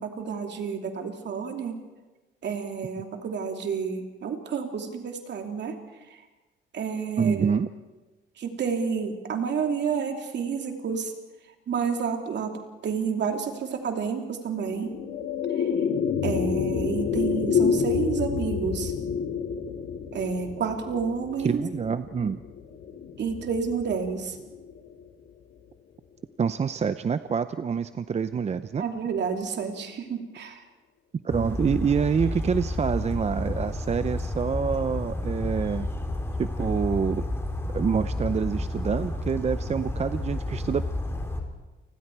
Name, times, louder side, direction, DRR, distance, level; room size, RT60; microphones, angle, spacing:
voice 1, 0.0-1.8 2.4-5.7 6.7-7.5 8.4-11.1 11.7-14.9 15.5-15.7 16.2-18.9 20.1-21.6 23.2-24.4 28.8-30.6, right 6 dB, 60° right, 4 dB, 2.9 m, -30 dB
voice 2, 7.2-7.7 21.4-22.4 26.4-28.8 31.2-35.9 36.4-37.2 37.7-40.8, right 6 dB, 35° right, 12 dB, 0.6 m, -26 dB
sound 1, 14.5-25.0, left 7 dB, 75° left, 2.1 m, -29 dB
Bird vocalization bird call bird song, 31.3-41.4, left 1 dB, 10° left, 3.5 m, -31 dB
29.0 x 20.5 x 4.7 m, 1.2 s
cardioid pair, 90°, 20 cm